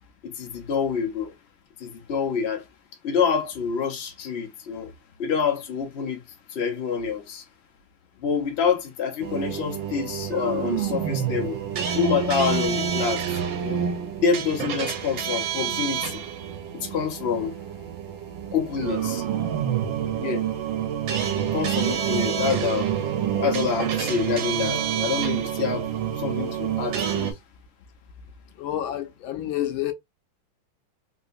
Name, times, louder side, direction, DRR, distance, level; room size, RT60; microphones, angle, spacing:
voice 1, 0.2-1.3 1.8-2.6 3.0-4.9 5.2-6.2 6.5-7.4 8.2-11.6 11.9-13.2 13.6-13.8 14.2-16.2 16.7-17.5 18.5-19.2 20.2-20.4 21.5-22.9 23.4-25.9 26.1-27.4, left 6 dB, 45° left, 0.9 m, -27 dB
sound 1, 9.2-27.3, right 9 dB, 70° right, 1.5 m, -28 dB
voice 2, 28.6-29.9, left 12 dB, 80° left, 1.4 m, -29 dB
3.6 x 2.8 x 2.5 m
omnidirectional pair, 2.2 m